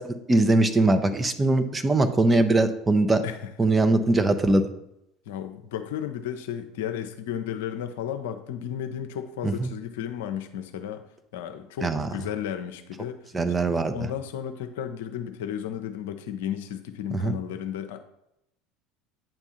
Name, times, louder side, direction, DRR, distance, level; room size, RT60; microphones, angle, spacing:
voice 1, 0.0-3.2 3.6-4.7 9.4-9.5 11.8-12.1 13.3-13.9 17.1-17.3, right 2 dB, 20° right, 8 dB, 0.7 m, -21 dB
voice 2, 3.2-3.7 5.3-11.0 11.3-18.0, left 9 dB, 65° left, 7 dB, 0.6 m, -34 dB
9.0 x 3.6 x 5.7 m, 0.81 s
figure-of-eight pair, 70°, 0 cm